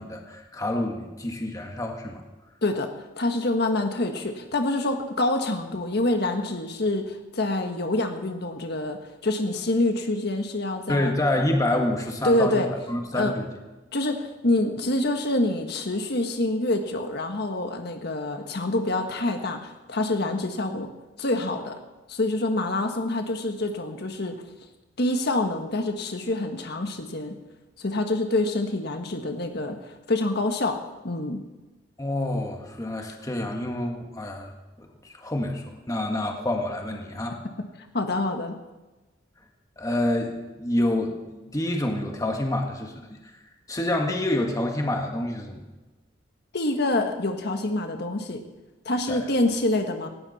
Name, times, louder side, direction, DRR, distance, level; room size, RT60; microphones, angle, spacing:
voice 1, 0.0-2.2 10.9-13.4 32.0-34.5 34.8-37.4 39.8-43.2 43.7-45.6 49.1-49.2, left 1 dB, 20° left, 2 dB, 1.6 m, -27 dB
voice 2, 2.6-2.9 3.2-11.1 12.2-12.7 13.1-13.3 13.9-20.9 21.2-21.8 22.1-24.4 25.0-27.4 27.8-30.8 31.0-31.4 37.9-38.5 46.5-48.4 48.8-50.1, left 2 dB, 60° left, 5 dB, 1.5 m, -26 dB
18.5 x 16.0 x 4.2 m, 1.1 s
head